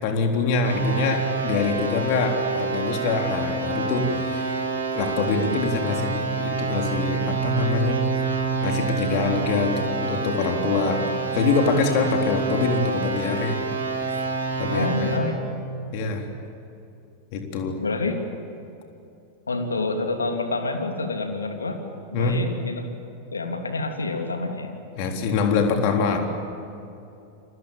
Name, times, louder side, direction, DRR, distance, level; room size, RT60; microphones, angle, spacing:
voice 1, 0.0-4.6 4.9-8.0 8.6-11.0 11.3-13.6 14.0-14.2 14.6-14.9 15.9-16.2 17.3-17.8 22.1-22.4 25.0-26.2, left 4 dB, 45° left, 3 dB, 3.7 m, -24 dB
sound 1, 0.6-15.2, right 4 dB, 75° right, 5.4 m, -27 dB
voice 2, 14.7-15.4 17.8-18.2 19.5-21.8 22.1-23.0 23.3-24.7, left 3 dB, 75° left, 4 dB, 3.0 m, -28 dB
30.0 x 24.5 x 7.5 m, 2.7 s
figure-of-eight pair, 90°, 0 cm